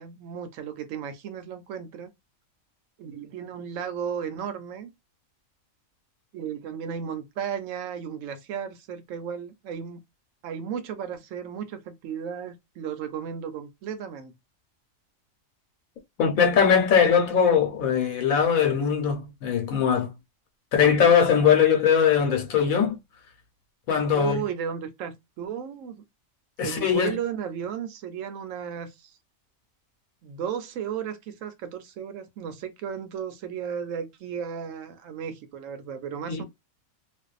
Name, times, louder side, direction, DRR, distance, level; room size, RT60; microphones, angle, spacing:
voice 1, 0.0-2.1 3.0-4.9 6.3-10.0 10.4-14.3 24.1-26.0 26.6-29.1 30.2-36.4, right 8 dB, 75° right, 0.9 m, -34 dB
voice 2, 16.2-20.1 20.7-23.0 23.9-24.4 26.6-27.2 36.3-36.4, left 7 dB, 90° left, 1.2 m, -21 dB
2.6 x 2.2 x 2.4 m
omnidirectional pair, 1.4 m